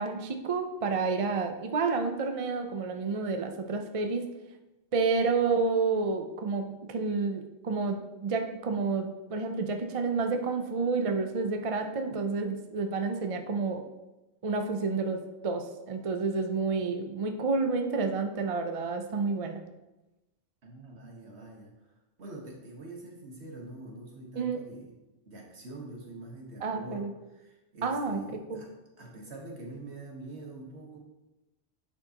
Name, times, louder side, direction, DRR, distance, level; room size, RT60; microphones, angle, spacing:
voice 1, 0.0-4.3 4.9-13.8 14.4-19.6 24.4-24.6 26.6-27.1 27.8-28.2 28.5-28.6, right 4 dB, 45° right, 5 dB, 0.5 m, -30 dB
voice 2, 20.6-21.9 22.2-24.9 25.3-28.7 29.0-31.0, right 2 dB, 60° right, 0 dB, 1.6 m, -45 dB
10.0 x 4.8 x 2.9 m, 1.0 s
omnidirectional pair, 1.2 m